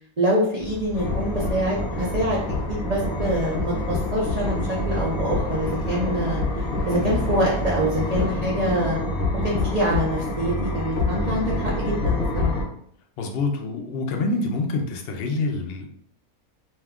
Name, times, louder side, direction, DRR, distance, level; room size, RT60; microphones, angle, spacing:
voice 1, 0.2-2.4 2.7-4.6 4.9-6.4 6.9-9.0 9.4-12.5, equal, 65° right, -6 dB, 0.3 m, -25 dB
Boat Water vehicle, 0.6-8.2, left 1 dB, 5° left, 0.7 m, -34 dB
sound 1, 0.9-12.6, left 2 dB, 45° left, 0.9 m, -27 dB
voice 2, 13.2-15.9, left 3 dB, 70° left, 2 dB, 0.5 m, -26 dB
2.7 x 2.3 x 3.5 m, 0.68 s
omnidirectional pair, 1.5 m